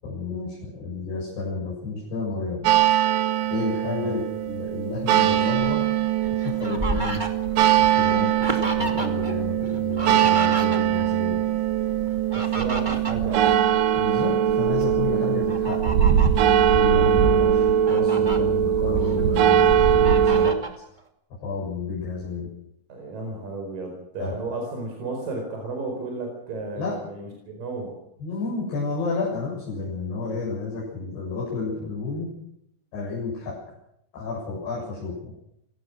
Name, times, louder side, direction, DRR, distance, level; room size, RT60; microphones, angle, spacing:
voice 1, 0.0-2.7 3.5-5.8 6.3-7.2 7.8-11.4 13.9-15.8 16.7-20.8 21.4-22.5 24.2-24.6 26.7-27.0 28.2-32.3 32.9-33.6 34.1-35.3, left 4 dB, 75° left, -7 dB, 9.6 m, -31 dB
sound 1, 2.7-20.5, right 10 dB, 80° right, 3.6 m, -21 dB
Fowl, 6.0-9.3 9.6-11.2 12.1-14.2 14.6-14.8 15.5-16.5 17.1-17.2 17.6-18.4 18.9-19.6 20.0-20.8, right 2 dB, 20° right, 1.5 m, -32 dB
voice 2, 12.3-13.6 22.9-28.0, right 3 dB, 55° right, 2 dB, 5.9 m, -33 dB
28.5 x 18.0 x 6.4 m, 0.75 s
omnidirectional pair, 4.8 m